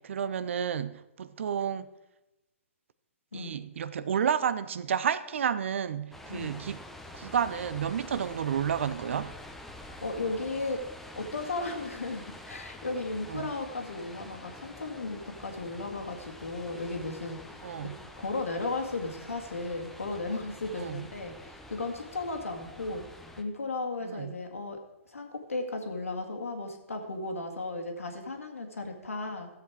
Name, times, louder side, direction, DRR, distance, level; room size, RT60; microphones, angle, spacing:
voice 1, 0.0-1.9 3.3-6.8 7.1-9.3 13.3-13.5 17.6-18.0 20.7-21.0 24.0-24.4, right 8 dB, 65° right, 15 dB, 0.7 m, -31 dB
sound 1, 6.1-23.4, left 1 dB, 5° left, 0.9 m, -47 dB
voice 2, 9.8-29.5, left 3 dB, 80° left, 4 dB, 2.2 m, -35 dB
14.5 x 7.9 x 4.8 m, 0.95 s
figure-of-eight pair, 125°, 7 cm